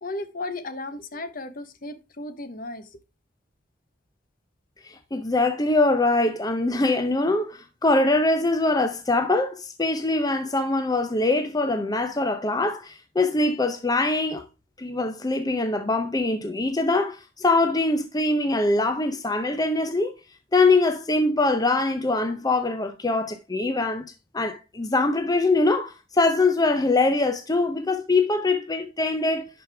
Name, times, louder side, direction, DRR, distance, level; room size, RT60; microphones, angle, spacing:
voice 1, 0.0-2.8, left 2 dB, 50° left, 1.0 m, -35 dB
voice 2, 4.8-14.4 14.8-20.1 20.5-24.1 24.3-29.5, left 2 dB, 20° left, 0.7 m, -23 dB
11.0 x 5.1 x 3.4 m
head